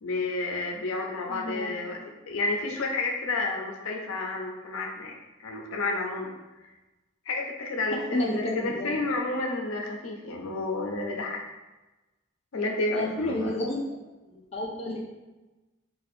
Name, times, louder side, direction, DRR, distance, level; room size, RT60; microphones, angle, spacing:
voice 1, 0.0-2.0 2.3-5.2 5.4-6.3 7.3-11.4 12.5-13.6, left 2 dB, 90° left, 1 dB, 0.6 m, -30 dB
voice 2, 1.3-1.7 8.1-9.0 12.9-13.8 14.3-15.0, left 1 dB, 30° left, -3 dB, 0.5 m, -31 dB
2.6 x 2.4 x 4.1 m, 1.1 s
head